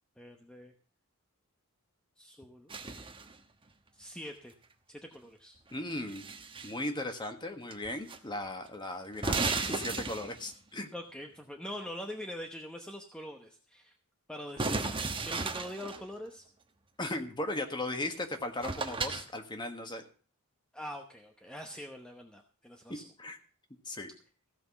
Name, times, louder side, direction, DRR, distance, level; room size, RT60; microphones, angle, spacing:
voice 1, 0.2-0.7 2.2-2.7 3.9-4.5 4.9-5.6 10.9-13.9 14.3-16.4 20.7-23.0, equal, 5° left, 3 dB, 0.9 m, -44 dB
sound 1, 2.7-3.3 5.7-6.8 7.7-8.2 8.4-8.5 9.1-10.5 14.6-16.0 18.1-18.2 18.6-19.3, right 3 dB, 25° right, 1.1 m, -34 dB
voice 2, 5.7-6.2 6.6-10.9 17.0-20.0 23.2-23.4 23.8-24.1, left 1 dB, 20° left, 6 dB, 1.5 m, -37 dB
15.5 x 6.0 x 7.1 m, 0.41 s
head